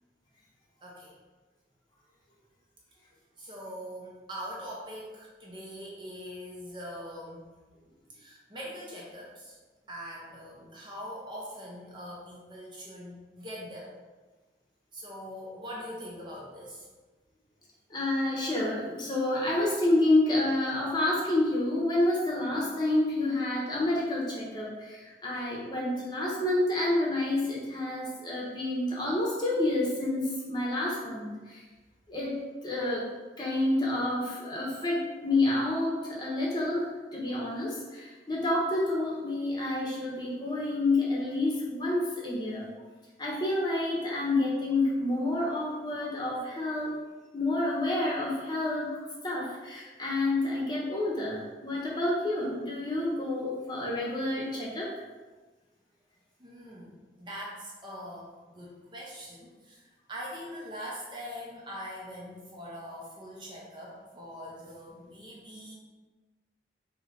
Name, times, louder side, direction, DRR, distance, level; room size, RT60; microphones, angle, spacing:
voice 1, 0.8-1.1 3.4-7.5 8.1-9.6 9.9-13.9 14.9-16.9 56.4-56.9 57.2-65.7, equal, 25° right, -5 dB, 0.7 m, -42 dB
voice 2, 17.9-31.6 32.1-33.1 33.4-42.7 43.2-46.9 47.3-48.9 49.2-54.9, left 2 dB, 25° left, -5 dB, 0.9 m, -29 dB
3.8 x 3.0 x 4.0 m, 1.3 s
head